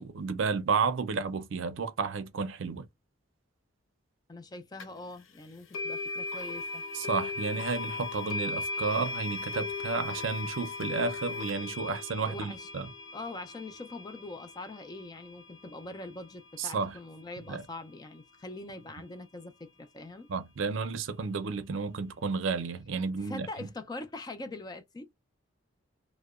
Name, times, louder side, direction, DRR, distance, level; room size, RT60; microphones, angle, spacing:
voice 1, 0.0-2.9 6.9-12.9 16.6-16.9 17.5-17.6 20.3-23.7, right 4 dB, 75° right, 0.5 m, -32 dB
voice 2, 4.3-6.8 12.2-12.7 13.1-20.3 23.2-25.1, left 2 dB, 20° left, 0.3 m, -43 dB
sound 1, 4.8-4.9 5.7-16.7, left 3 dB, 85° left, 0.5 m, -38 dB
2.8 x 2.0 x 2.3 m
head